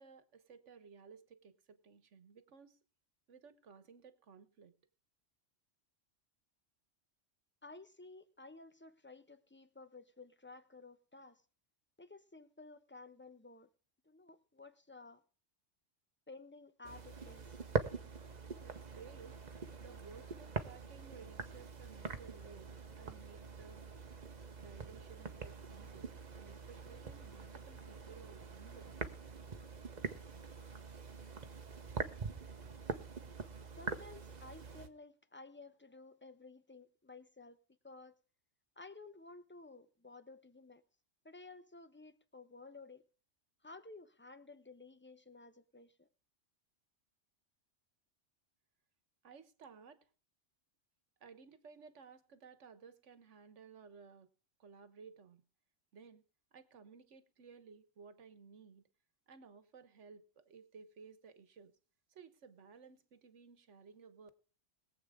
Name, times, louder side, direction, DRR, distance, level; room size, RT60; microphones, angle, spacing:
voice 1, 0.0-2.8 3.3-4.8 18.6-19.4 19.8-23.8 24.6-29.1 49.2-50.1 51.2-54.3 54.6-55.4 55.9-56.2 56.5-58.9 59.3-61.7 62.1-64.3, right 5 dB, 80° right, 1.5 m, -57 dB
voice 2, 7.6-11.4 12.0-13.7 14.0-15.2 16.3-17.5 33.8-37.6 37.8-38.1 38.8-40.8 41.2-43.0 43.6-46.1, left 3 dB, 10° left, 0.8 m, -54 dB
sound 1, 16.8-34.9, right 4 dB, 40° right, 1.1 m, -44 dB
22.0 x 8.1 x 3.7 m
omnidirectional pair, 1.2 m